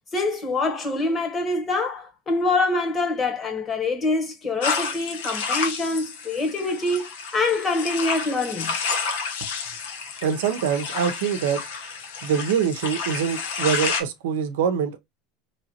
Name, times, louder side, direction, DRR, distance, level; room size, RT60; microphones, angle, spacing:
voice 1, 0.1-8.7, left 2 dB, 30° left, 1.4 m, -25 dB
sound 1, 4.6-14.0, left 5 dB, 85° left, 0.9 m, -30 dB
voice 2, 10.2-11.6 12.2-15.0, right 7 dB, 85° right, 0.6 m, -24 dB
3.9 x 3.2 x 2.8 m
supercardioid pair, 105°, 0 cm